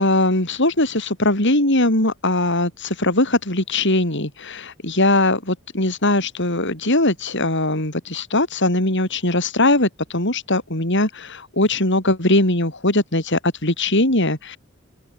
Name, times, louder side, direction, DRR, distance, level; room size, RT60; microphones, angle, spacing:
voice 1, 0.0-14.6, left 2 dB, 60° left, 7.5 m, -20 dB
open air
head